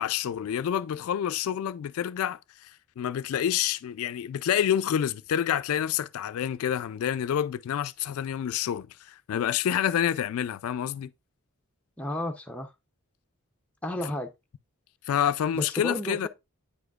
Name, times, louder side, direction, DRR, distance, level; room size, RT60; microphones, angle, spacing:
voice 1, 0.0-11.1 15.1-16.3, left 9 dB, 70° left, 0.3 m, -28 dB
voice 2, 12.0-12.7 13.8-14.3 15.5-16.3, left 1 dB, 5° left, 0.5 m, -32 dB
8.4 x 4.9 x 2.3 m
head